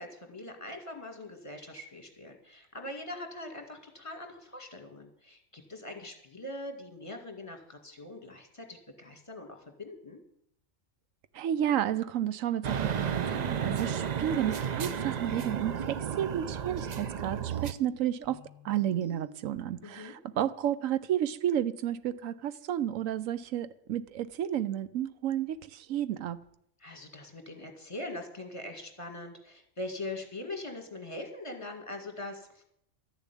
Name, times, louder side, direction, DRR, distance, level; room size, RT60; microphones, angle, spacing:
voice 1, 0.0-10.2 19.8-20.1 26.8-32.6, left 2 dB, 25° left, 2.2 m, -42 dB
voice 2, 11.3-26.4, right 10 dB, 90° right, 1.1 m, -31 dB
sound 1, 12.6-17.7, right 8 dB, 50° right, 0.5 m, -33 dB
sound 2, 15.2-19.7, right 5 dB, 35° right, 3.4 m, -51 dB
13.0 x 7.0 x 9.8 m
omnidirectional pair, 1.3 m